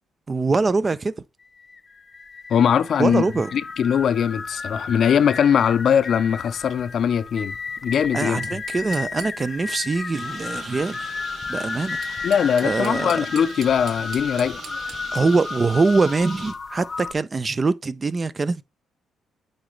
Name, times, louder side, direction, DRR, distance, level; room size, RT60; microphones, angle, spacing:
voice 1, 0.3-1.1 3.0-3.5 8.1-11.1 11.5-12.2 12.6-13.1 15.1-18.6, right 3 dB, 30° right, 0.6 m, -23 dB
sound 1, 1.4-17.1, left 4 dB, 35° left, 0.8 m, -33 dB
voice 2, 2.5-3.2 3.5-7.6 7.8-8.4 12.2-14.6, left 8 dB, 60° left, 0.5 m, -20 dB
sound 2, 7.8-9.7 11.8-15.4, right 8 dB, 75° right, 1.0 m, -43 dB
Bird, 10.1-16.5, right 4 dB, 55° right, 3.8 m, -41 dB
8.8 x 3.9 x 3.2 m
cardioid pair, 90°, 0 cm